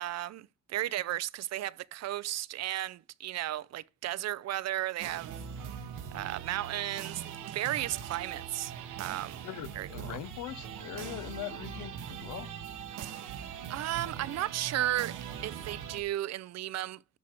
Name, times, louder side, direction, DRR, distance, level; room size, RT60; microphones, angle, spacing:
voice 1, 0.0-5.3 5.6-5.9 6.1-8.7 9.0-9.4 9.7-10.2 13.7-17.0, right 14 dB, 60° right, 0.5 m, -34 dB
sound 1, 5.0-16.0, right 8 dB, 85° right, 1.3 m, -41 dB
voice 2, 9.4-12.5, left 15 dB, 85° left, 0.6 m, -41 dB
12.0 x 4.8 x 4.4 m
cardioid pair, 90°, 30 cm